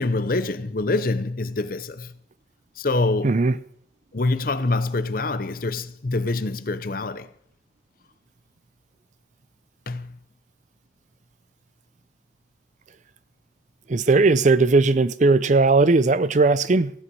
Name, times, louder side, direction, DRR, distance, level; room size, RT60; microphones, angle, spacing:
voice 1, 0.0-2.1 2.8-3.4 4.1-7.3 9.9-10.2, left 2 dB, 50° left, 0.7 m, -25 dB
voice 2, 3.2-3.6 13.9-16.9, right 3 dB, 40° right, 0.5 m, -18 dB
15.5 x 9.7 x 5.4 m
head